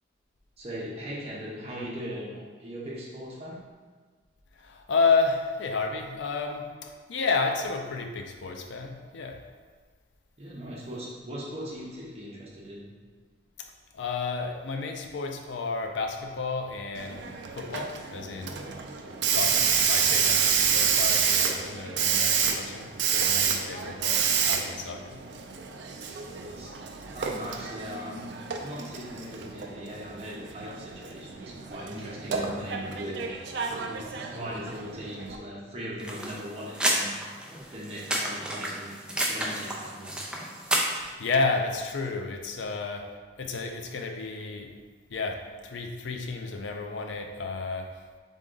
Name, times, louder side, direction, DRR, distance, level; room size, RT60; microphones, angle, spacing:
voice 1, 0.6-3.6 10.4-12.9 25.2-25.4 25.8-26.7 27.1-28.3 28.6-33.2 33.6-37.1 37.7-38.9 39.3-40.2, equal, 30° right, -5 dB, 0.9 m, -39 dB
voice 2, 4.6-9.4 13.9-17.2 17.5-18.6 19.3-25.2 41.0-44.7 45.1-47.9, left 4 dB, 75° left, 4 dB, 0.5 m, -31 dB
Hiss, 17.0-35.4, right 7 dB, 70° right, 0.4 m, -29 dB
sound 1, 36.0-41.1, right 1 dB, 5° right, 0.4 m, -30 dB
3.7 x 3.7 x 3.8 m, 1.5 s
head